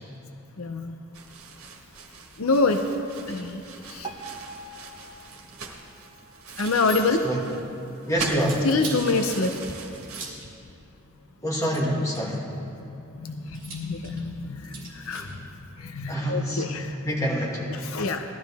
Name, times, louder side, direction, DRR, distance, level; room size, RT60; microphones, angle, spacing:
voice 1, 0.6-0.9 2.4-2.8 3.3-4.1 6.6-7.2 8.6-9.6 12.8-12.9 13.2-15.3 15.8-17.1 17.7-18.2, left 3 dB, 75° left, 6 dB, 0.6 m, -26 dB
sound 1, 1.1-10.3, right 4 dB, 80° right, 1.6 m, -41 dB
Piano, 4.0-7.1 7.7-7.8 8.1-8.2 8.9-9.0 9.6-9.7, right 3 dB, 20° right, 0.9 m, -44 dB
sound 2, 6.5-7.4 8.4-9.1 10.0-10.5 11.6-12.4 13.5-15.4, right 4 dB, 40° right, 2.6 m, -40 dB
voice 2, 8.1-8.6 11.4-12.5 16.1-16.7 17.1-17.7, equal, 15° left, -4 dB, 2.0 m, -26 dB
19.0 x 12.5 x 3.5 m, 2.7 s
head